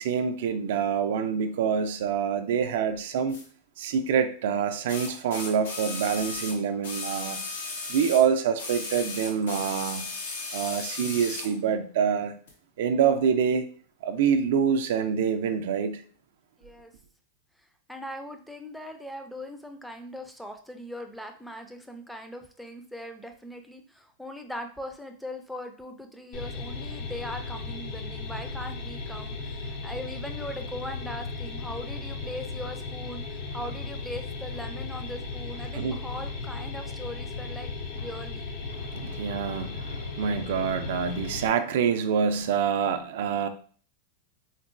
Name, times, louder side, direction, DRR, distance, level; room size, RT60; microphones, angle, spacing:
voice 1, 0.0-3.4 3.8-7.4 7.9-10.0 10.5-12.3 12.8-13.7 14.0-16.0 35.7-36.0 38.7-43.5, right 7 dB, 70° right, 8 dB, 0.3 m, -26 dB
sound 1, 3.3-3.4 4.9-8.3 8.6-11.5 12.5-12.6, left 3 dB, 85° left, 0.8 m, -36 dB
voice 2, 16.6-16.9 17.9-38.5, left 1 dB, ahead, 5 dB, 0.4 m, -40 dB
sound 2, 26.3-41.5, left 3 dB, 55° left, 0.6 m, -36 dB
3.8 x 2.1 x 2.4 m, 0.44 s
supercardioid pair, 135°, 0 cm